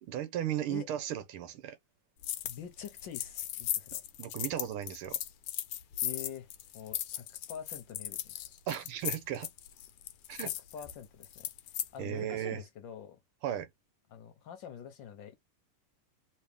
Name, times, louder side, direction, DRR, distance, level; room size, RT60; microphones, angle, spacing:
voice 1, 0.0-1.8 4.2-5.2 8.7-9.5 10.3-10.5 12.0-12.6 13.4-13.7, right 11 dB, 80° right, 1.6 m, -35 dB
sound 1, 2.2-2.6 2.9-11.9, left 12 dB, 90° left, 1.5 m, -37 dB
voice 2, 2.4-4.0 6.0-6.5 6.7-8.5 10.7-11.5 11.9-13.2 14.1-15.3, left 8 dB, 65° left, 1.4 m, -45 dB
3.2 x 3.1 x 3.4 m
omnidirectional pair, 2.4 m